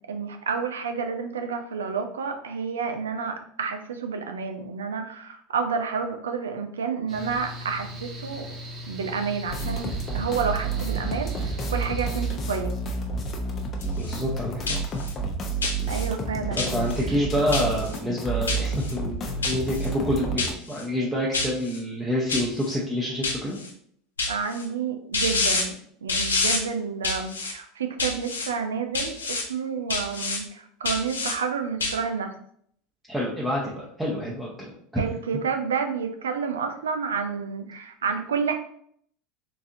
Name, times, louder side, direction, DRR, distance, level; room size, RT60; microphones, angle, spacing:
voice 1, 0.1-8.4 8.9-12.7 15.9-16.9 24.3-32.3 35.0-38.5, right 5 dB, 85° right, 6 dB, 0.4 m, -30 dB
Mechanical fan, 7.1-12.3, left 1 dB, 40° right, 1.0 m, -39 dB
sound 1, 9.5-20.5, right 3 dB, 40° left, 0.6 m, -30 dB
sound 2, 13.8-14.2 14.7-15.1 15.6-16.1 16.6-17.0 17.5-18.0 18.5-18.9 19.4-19.9 20.4-20.8 21.3-21.8 22.3-22.7 23.2-23.7 24.2-24.6 25.1-25.6 26.1-26.6 27.0-27.5 28.0-28.5 28.9-29.4 29.9-30.4 30.8-31.3 31.8-32.0, left 3 dB, 90° left, 0.6 m, -27 dB
voice 2, 14.0-14.8 16.5-23.6 33.1-35.0, equal, 10° right, -6 dB, 0.8 m, -28 dB
3.8 x 2.6 x 2.5 m, 0.64 s
hypercardioid pair, 85°, 0 cm